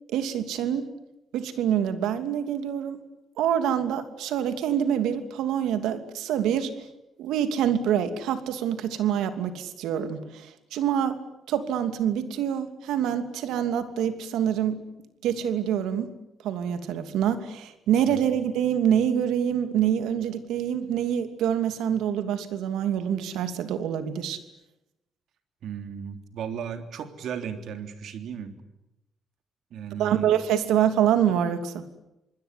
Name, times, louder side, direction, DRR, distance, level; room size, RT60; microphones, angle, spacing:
voice 1, 0.1-0.9 1.3-3.0 3.4-6.7 7.2-11.2 11.5-14.8 15.2-16.1 16.4-24.4 30.0-31.8, right 9 dB, 85° right, 9 dB, 2.8 m, -26 dB
voice 2, 25.6-28.6 29.7-30.3, right 8 dB, 70° right, 8 dB, 3.3 m, -35 dB
27.5 x 21.0 x 9.8 m, 0.91 s
cardioid pair, 90°, 0 cm